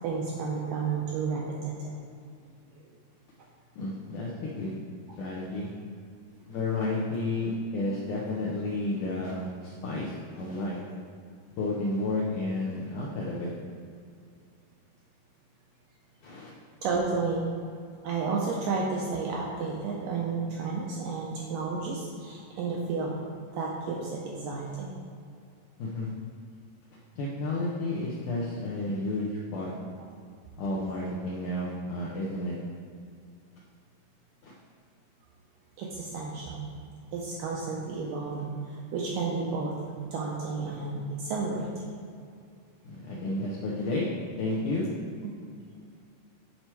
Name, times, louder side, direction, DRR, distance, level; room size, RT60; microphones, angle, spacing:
voice 1, 0.0-2.0 2.7-2.8 16.8-17.5 18.0-23.2 23.5-25.0 35.8-36.7 37.1-42.0, right 4 dB, 80° right, -2 dB, 2.0 m, -32 dB
voice 2, 3.8-4.8 5.2-5.7 6.5-10.8 11.6-13.5 16.2-16.5 25.8-26.1 27.2-29.7 30.6-32.6 34.4-34.5 42.8-44.1 44.4-44.9, left 2 dB, 80° left, -5 dB, 1.8 m, -31 dB
8.3 x 4.4 x 4.5 m, 2.3 s
omnidirectional pair, 4.6 m